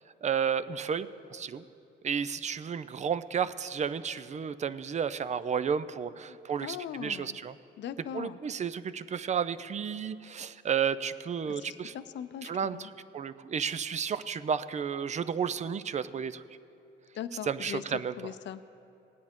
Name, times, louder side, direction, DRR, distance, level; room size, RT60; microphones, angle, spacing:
voice 1, 0.2-1.6 2.0-7.5 8.1-11.9 12.4-16.4 17.5-18.1, right 7 dB, 35° right, 14 dB, 0.4 m, -32 dB
voice 2, 6.3-7.4 7.8-8.4 11.4-12.9 17.1-18.6, left 9 dB, 65° left, 13 dB, 0.5 m, -40 dB
17.5 x 9.5 x 3.7 m, 2.8 s
cardioid pair, 90°, 20 cm